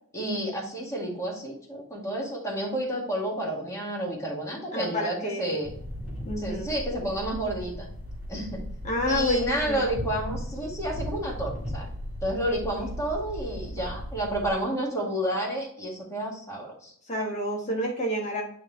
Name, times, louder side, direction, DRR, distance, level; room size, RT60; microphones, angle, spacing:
voice 1, 0.1-5.7 6.4-7.9 8.3-8.6 9.1-11.9 12.2-16.9, right 1 dB, 15° left, -3 dB, 1.9 m, -30 dB
voice 2, 4.7-5.6 6.3-6.7 8.8-9.9 17.1-18.4, equal, 35° left, -1 dB, 1.3 m, -29 dB
sound 1, 5.6-14.5, equal, 10° right, 2.8 m, -37 dB
9.4 x 3.4 x 3.2 m, 0.64 s
head